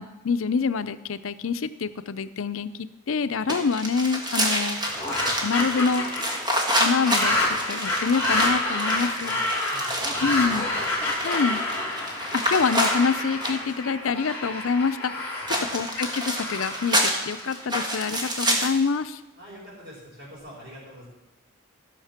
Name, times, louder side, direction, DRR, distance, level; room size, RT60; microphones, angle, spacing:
voice 1, 0.0-2.7 3.1-4.8 5.4-6.0 6.8-9.4 10.2-10.7 11.2-11.6 12.3-15.4 15.7-19.2, left 5 dB, 75° left, 13 dB, 0.5 m, -26 dB
sound 1, 3.5-13.7 15.5-18.9, equal, 20° right, 1.6 m, -28 dB
sound 2, 4.7-17.9, left 1 dB, 10° left, 2.6 m, -29 dB
voice 2, 9.7-10.8 15.5-15.7 19.4-21.1, equal, 50° right, -10 dB, 5.2 m, -44 dB
14.5 x 6.5 x 5.8 m, 1.0 s
head